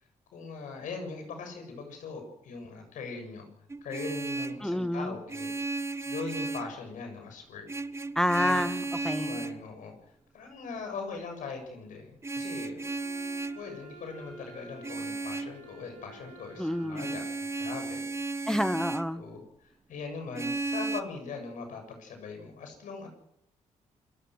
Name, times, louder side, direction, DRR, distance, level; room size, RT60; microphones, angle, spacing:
voice 1, 0.3-3.5 3.8-5.5 6.1-7.7 8.4-8.6 9.2-9.9 10.3-12.9 13.5-17.2 17.6-18.1 19.2-23.1, left 4 dB, 75° left, 5 dB, 7.2 m, -40 dB
Vehicle horn car horn honking, 3.7-4.7 5.3-6.8 7.7-9.6 12.2-13.6 14.8-15.6 16.9-19.1 20.3-21.0, right 3 dB, 20° right, 1.1 m, -34 dB
voice 2, 4.6-5.2 8.2-9.4 16.6-17.2 18.5-19.2, equal, 5° left, 13 dB, 1.0 m, -29 dB
Wind instrument woodwind instrument, 12.8-17.9, right 2 dB, 75° right, 5.5 m, -50 dB
27.5 x 17.5 x 6.4 m, 0.74 s
cardioid pair, 110°, 13 cm